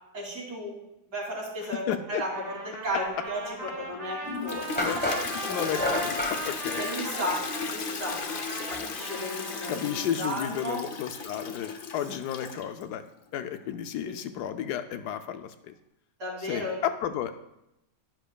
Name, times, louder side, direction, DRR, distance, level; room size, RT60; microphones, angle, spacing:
voice 1, 0.1-0.7 1.1-1.8 2.1-4.9 6.8-8.2 8.7-9.8 10.2-10.8 12.5-12.6 14.0-14.1 16.2-16.8, equal, 75° right, -4 dB, 3.5 m, -34 dB
voice 2, 1.9-2.2 4.8-5.0 5.4-6.9 9.7-13.0 13.3-15.7 16.5-17.4, left 10 dB, 75° left, 9 dB, 1.1 m, -32 dB
Trumpet, 2.2-7.8 8.3-10.2, right 2 dB, 25° right, 1.4 m, -38 dB
sound 1, 3.9-4.0 4.8-6.4, left 2 dB, 5° left, 0.9 m, -30 dB
Toilet flush, 4.2-12.8, left 4 dB, 55° left, 0.6 m, -36 dB
10.5 x 10.0 x 2.3 m, 0.87 s
omnidirectional pair, 1.8 m